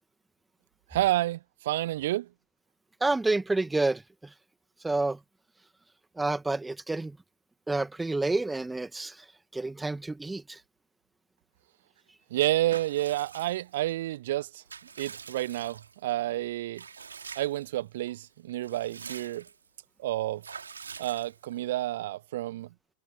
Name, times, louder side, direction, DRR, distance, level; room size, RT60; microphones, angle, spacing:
voice 1, 0.9-2.3 12.3-14.6 15.0-16.8 17.3-19.5 20.0-20.4 21.0-22.7, right 15 dB, 55° right, 1.3 m, -30 dB
voice 2, 3.0-4.3 4.8-5.2 6.2-7.2 7.7-9.2 9.5-10.6, right 2 dB, 10° right, 2.3 m, -29 dB
Water / Bathtub (filling or washing) / Liquid, 12.7-13.9 14.4-16.1 16.7-17.7 18.1-18.2 18.5-19.7 20.4-21.7, right 6 dB, 70° right, 3.2 m, -45 dB
figure-of-eight pair, 90°, 0 cm